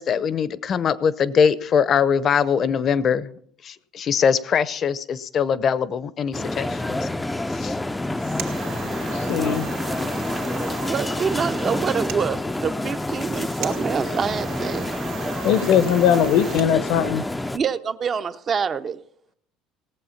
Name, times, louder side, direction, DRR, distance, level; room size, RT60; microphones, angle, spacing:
voice 1, 0.0-3.3 3.6-7.1 7.5-7.8, left 7 dB, 40° left, 0.7 m, -22 dB
sound 1, 6.3-17.6, left 2 dB, 10° left, 0.5 m, -28 dB
sound 2, 8.0-16.7, right 8 dB, 85° right, 2.2 m, -37 dB
voice 2, 9.0-9.7 15.4-17.2, left 9 dB, 75° left, 1.1 m, -20 dB
voice 3, 10.7-14.9 17.5-19.0, right 6 dB, 35° right, 0.6 m, -26 dB
18.0 x 7.7 x 5.7 m
cardioid pair, 130°, 0 cm